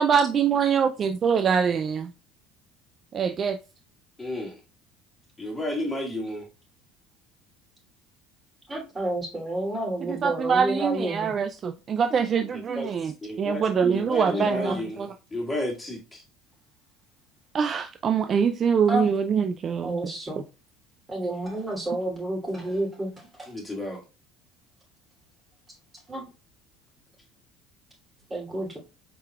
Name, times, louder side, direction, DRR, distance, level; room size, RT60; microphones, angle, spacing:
voice 1, 0.0-2.1 3.1-3.6 10.1-15.1 17.5-20.0, right 7 dB, 40° right, 0.3 m, -24 dB
voice 2, 4.2-4.5 5.4-6.4 12.8-12.9 13.2-13.6 13.9-16.2 23.5-24.0, left 1 dB, 20° left, 1.9 m, -32 dB
voice 3, 8.7-11.3 12.1-12.2 13.8-14.0 14.3-14.8 18.9-19.1 19.8-20.4 21.1-23.1 23.4-23.5 26.1-26.2 28.3-28.8, right 1 dB, 20° right, 2.9 m, -30 dB
4.9 x 4.4 x 2.4 m
hypercardioid pair, 75°, 0 cm